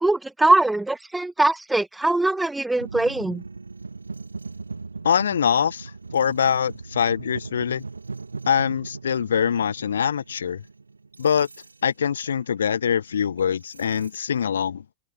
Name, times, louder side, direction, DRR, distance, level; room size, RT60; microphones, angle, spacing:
voice 1, 0.0-3.4, right 2 dB, 5° right, 1.6 m, -21 dB
sound 1, 2.8-14.4, right 4 dB, 80° right, 2.5 m, -39 dB
voice 2, 5.0-7.8 8.5-10.6 11.2-11.5 11.8-14.8, left 8 dB, 70° left, 1.2 m, -23 dB
open air
figure-of-eight pair, 90°, 0 cm